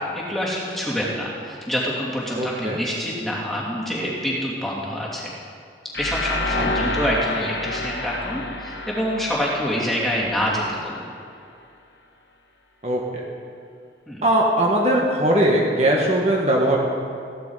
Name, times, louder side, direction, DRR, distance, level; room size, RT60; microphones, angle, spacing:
voice 1, 0.1-5.3 6.0-11.0 14.1-14.3, equal, ahead, -6 dB, 2.6 m, -26 dB
voice 2, 2.3-2.8 12.8-13.0 14.2-16.8, right 1 dB, 35° right, -2 dB, 1.4 m, -19 dB
sound 1, 5.9-10.8, left 2 dB, 65° left, 1.3 m, -29 dB
15.5 x 11.5 x 4.9 m, 2.4 s
head